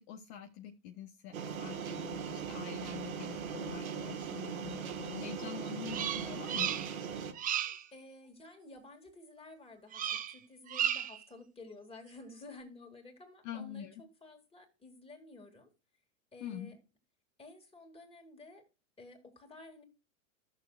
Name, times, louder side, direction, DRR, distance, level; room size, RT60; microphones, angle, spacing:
voice 1, 0.0-6.7 13.4-13.9 16.4-16.7, left 9 dB, 50° left, 1.2 m, -45 dB
sound 1, 1.3-7.3, right 6 dB, 90° right, 1.5 m, -40 dB
Bird vocalization bird call bird song, 5.9-7.1 7.3-7.9 9.9-10.4 10.7-11.2, right 10 dB, 20° right, 0.6 m, -34 dB
voice 2, 7.9-15.7 16.3-16.8 17.4-18.6 19.0-19.8, left 2 dB, 15° left, 2.7 m, -53 dB
14.5 x 6.7 x 2.5 m
hypercardioid pair, 105°, 41 cm